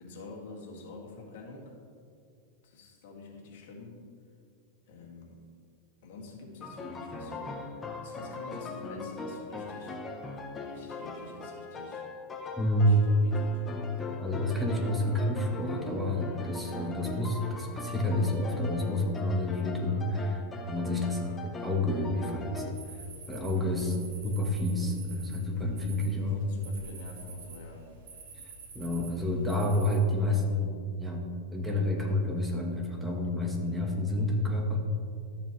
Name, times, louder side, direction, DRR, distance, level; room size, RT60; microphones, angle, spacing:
voice 1, 0.0-1.8 2.6-4.0 4.9-5.4 6.0-7.5 8.0-10.0 10.6-12.0 12.8-13.6 13.9-14.0 23.5-23.8 25.9-27.9, left 3 dB, 70° left, -1 dB, 1.9 m, -47 dB
sound 1, 6.6-22.7, left 3 dB, 15° left, 0.7 m, -40 dB
voice 2, 12.6-13.0 14.2-20.4 20.7-22.6 23.3-23.9 24.2-26.4 28.7-31.3 31.5-34.8, left 1 dB, 5° right, 0 dB, 1.1 m, -29 dB
sound 2, 22.7-30.0, right 4 dB, 80° right, 2.0 m, -48 dB
13.0 x 6.9 x 3.1 m, 2.4 s
supercardioid pair, 155°, 0 cm